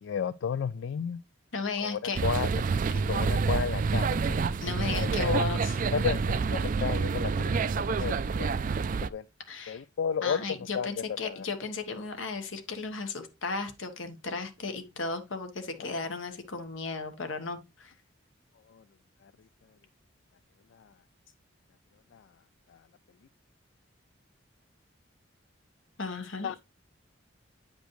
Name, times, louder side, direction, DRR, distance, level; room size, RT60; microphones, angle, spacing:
voice 1, 0.0-1.2 1.8-2.5 3.1-4.4 4.9-5.4 5.9-7.3 7.7-8.5 9.1-9.2 9.7-10.4 10.7-10.9 11.2-11.5 15.8-15.9 18.7-18.8 19.2-19.3 20.7-20.9 22.1-22.3 22.7-22.8 26.4-26.5, left 7 dB, 70° left, 0.3 m, -33 dB
voice 2, 1.5-2.2 4.6-5.8 9.5-9.8 10.2-17.9 26.0-26.5, left 4 dB, 85° left, 1.3 m, -35 dB
sound 1, 2.1-9.1, right 4 dB, 45° right, 0.3 m, -28 dB
8.9 x 5.2 x 3.1 m
head